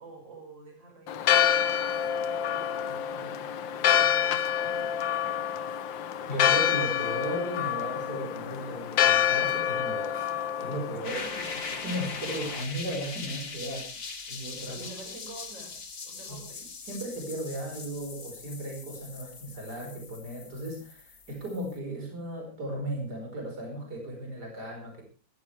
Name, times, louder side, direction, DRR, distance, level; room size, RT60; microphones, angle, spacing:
voice 1, 0.0-1.9 2.1-5.4 11.0-11.6 14.7-16.7, right 2 dB, 75° right, 2 dB, 6.1 m, -48 dB
Church bell, 1.1-12.6, left 9 dB, 80° left, 1.7 m, -27 dB
voice 2, 6.2-10.3 10.6-11.2 11.7-13.9 14.3-14.8 16.3-16.4 16.8-25.0, right 1 dB, 55° right, 1 dB, 5.6 m, -36 dB
sound 1, 11.0-21.8, left 4 dB, 50° left, 2.5 m, -41 dB
21.0 x 14.0 x 3.4 m, 0.35 s
omnidirectional pair, 2.0 m